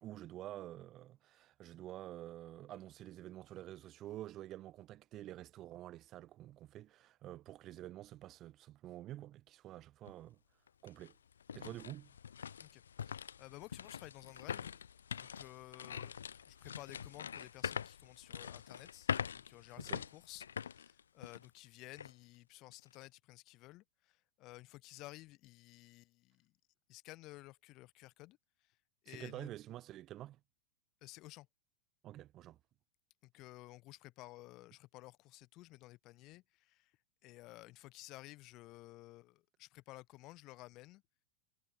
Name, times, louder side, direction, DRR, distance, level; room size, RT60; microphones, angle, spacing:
voice 1, 0.0-10.4 10.8-11.1 11.5-12.1 19.8-20.1 29.1-30.4 32.0-32.6, right 14 dB, 35° right, 0.9 m, -49 dB
sound 1, 10.1-10.2 10.7-21.6 22.0-22.1 22.7-23.0, left 7 dB, 70° left, 0.6 m, -44 dB
voice 2, 12.6-14.8 15.1-16.1 16.5-26.5 26.9-28.4 28.6-28.8 29.0-29.5 31.0-31.5 33.2-36.9 37.2-41.0, left 19 dB, 40° left, 0.9 m, -54 dB
figure-of-eight pair, 90°, 0 cm